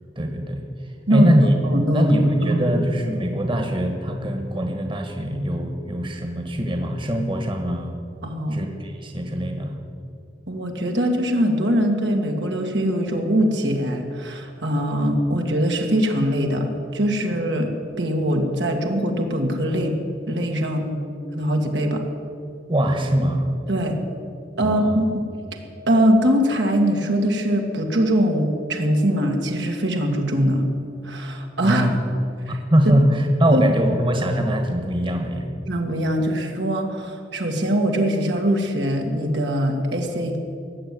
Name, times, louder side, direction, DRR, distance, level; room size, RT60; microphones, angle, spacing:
voice 1, 0.1-0.6 1.1-1.5 1.9-7.9 8.5-9.8 22.7-23.5 24.6-25.0 31.6-32.0 32.5-35.5, equal, 30° right, 4 dB, 1.5 m, -22 dB
voice 2, 1.6-2.1 2.4-2.8 8.2-8.6 10.5-20.0 20.3-21.0 21.3-22.0 23.7-24.0 24.6-25.1 25.9-30.7 31.0-31.9 32.5-32.6 33.5-33.6 35.7-40.4, equal, 80° right, 2 dB, 2.0 m, -22 dB
18.5 x 7.7 x 9.4 m, 2.5 s
head